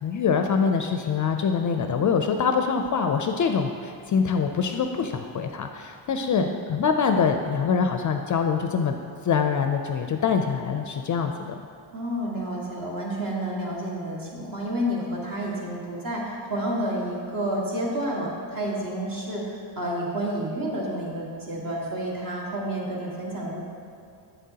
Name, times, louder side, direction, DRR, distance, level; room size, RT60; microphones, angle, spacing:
voice 1, 0.0-9.0 9.2-11.6, left 6 dB, 45° left, 5 dB, 0.4 m, -24 dB
voice 2, 11.9-23.6, right 1 dB, 45° right, -4 dB, 1.8 m, -30 dB
8.0 x 7.4 x 2.8 m, 2.6 s
cardioid pair, 105°, 46 cm